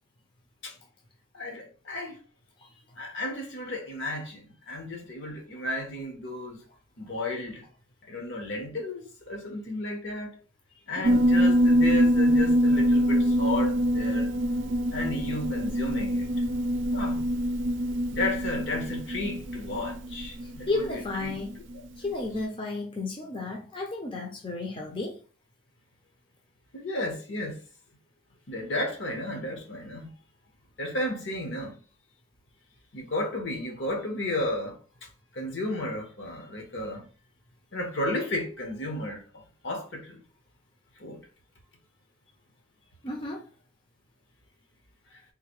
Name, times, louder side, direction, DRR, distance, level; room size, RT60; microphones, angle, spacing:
voice 1, 1.3-2.2 3.0-6.6 7.0-7.6 8.1-10.3 10.9-14.3 14.9-16.3 16.9-17.2 18.1-21.3 26.7-27.6 28.5-30.1 30.8-31.8 32.9-34.8 35.3-37.1 37.7-40.2 41.0-41.2, left 1 dB, 70° left, 1.0 m, -33 dB
Piano, 11.0-21.8, equal, 70° right, 0.4 m, -24 dB
voice 2, 20.4-21.6 22.0-25.2 43.0-43.4, left 2 dB, 25° left, 0.6 m, -33 dB
3.8 x 2.6 x 3.0 m
head